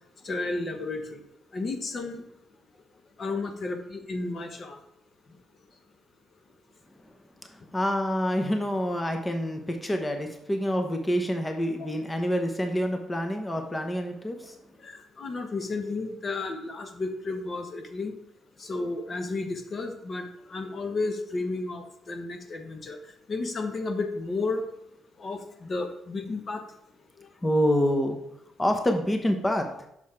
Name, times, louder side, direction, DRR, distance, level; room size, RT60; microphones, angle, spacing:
voice 1, 0.2-1.2 1.5-2.2 3.2-4.8 14.8-18.1 18.6-20.2 20.5-23.0 23.3-24.6 25.2-26.6, left 3 dB, 40° left, 5 dB, 1.0 m, -32 dB
voice 2, 7.5-14.6 27.4-28.2 28.6-29.7, equal, 15° left, 5 dB, 0.9 m, -27 dB
6.3 x 5.7 x 4.4 m, 0.79 s
cardioid pair, 90°, 0 cm